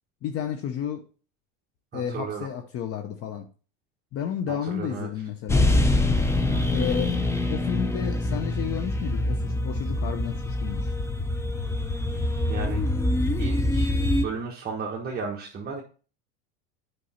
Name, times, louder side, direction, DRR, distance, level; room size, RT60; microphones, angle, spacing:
voice 1, 0.2-1.0 1.9-3.5 4.1-5.8 6.7-7.2 7.5-10.9, left 9 dB, 40° left, 0.8 m, -32 dB
voice 2, 1.9-2.5 4.5-5.1 6.5-6.8 12.5-12.8 13.4-13.9 14.2-15.8, right 5 dB, 25° right, 1.4 m, -34 dB
sound 1, 5.5-14.2, left 2 dB, 5° left, 0.6 m, -25 dB
8.5 x 5.4 x 4.3 m
supercardioid pair, 125°, 36 cm